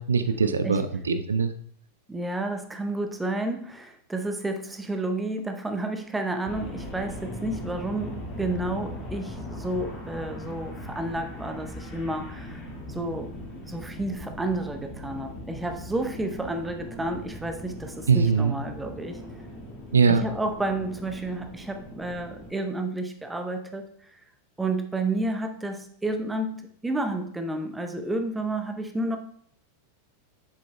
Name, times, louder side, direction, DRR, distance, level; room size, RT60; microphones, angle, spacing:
voice 1, 0.0-1.5 18.1-18.5 19.9-20.2, right 5 dB, 70° right, 10 dB, 0.4 m, -22 dB
voice 2, 2.1-12.6 12.9-13.3 13.7-19.2 20.1-23.9 24.6-29.2, right 2 dB, 10° right, 6 dB, 0.7 m, -31 dB
sound 1, 6.5-22.5, left 1 dB, 25° left, 2.0 m, -39 dB
7.4 x 7.3 x 2.2 m, 0.63 s
figure-of-eight pair, 90°, 0 cm